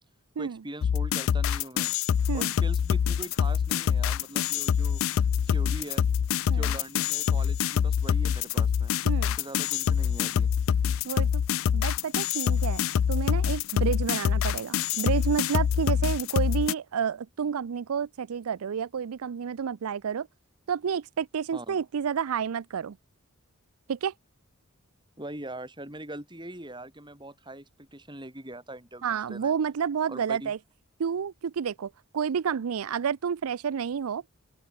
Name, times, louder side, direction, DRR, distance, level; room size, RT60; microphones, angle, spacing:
voice 1, 0.4-1.9 2.3-6.1 6.5-8.9 9.2-10.5 21.5-21.8 25.2-29.5 30.1-30.5, right 1 dB, 20° right, 8.0 m, -42 dB
sound 1, 0.8-16.7, left 8 dB, 70° left, 0.3 m, -25 dB
voice 2, 9.0-9.4 11.1-11.4 11.7-20.3 20.7-23.0 23.9-24.1 29.0-30.6 31.0-34.2, right 7 dB, 85° right, 0.5 m, -30 dB
open air
head